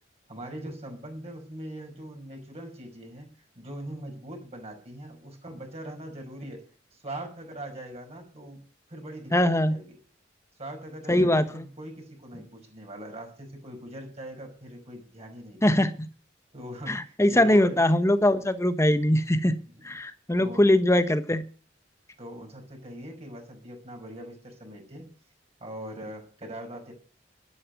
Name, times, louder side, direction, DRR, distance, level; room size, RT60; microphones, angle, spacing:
voice 1, 0.3-3.3 3.6-6.6 6.9-8.6 8.9-10.0 10.6-15.9 16.5-17.8 19.8-20.0 20.4-20.7 22.2-25.1 25.6-26.9, right 1 dB, 35° right, 2 dB, 5.6 m, -41 dB
voice 2, 9.3-9.7 11.1-11.6 15.6-16.1 16.9-19.6 19.8-21.4, left 1 dB, 15° left, 11 dB, 1.1 m, -22 dB
12.0 x 11.0 x 8.2 m, 0.40 s
head